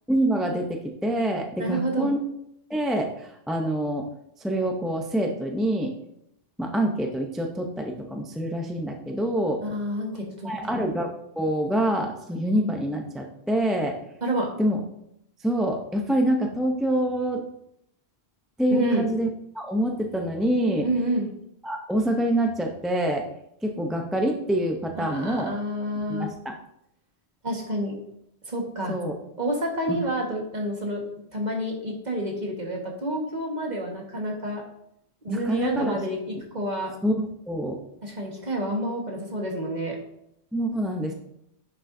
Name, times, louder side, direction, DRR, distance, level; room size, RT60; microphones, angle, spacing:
voice 1, 0.1-2.2 2.7-4.1 4.4-5.9 6.6-9.6 10.4-11.1 11.4-14.0 14.6-14.8 15.4-17.4 18.6-19.3 19.5-20.9 21.6-23.3 23.6-25.6 26.1-26.5 28.9-29.2 29.9-30.0 35.3-36.0 37.0-37.8 40.5-41.1, right 1 dB, ahead, 2 dB, 0.6 m, -26 dB
voice 2, 1.6-2.1 9.6-10.8 14.2-14.5 18.7-19.1 20.8-21.3 24.9-26.3 27.4-27.9 28.4-29.0 29.4-31.0 31.3-34.6 35.2-36.9 38.0-40.0, right 1 dB, 40° right, -1 dB, 1.7 m, -29 dB
9.9 x 6.8 x 2.7 m, 0.77 s
omnidirectional pair, 1.1 m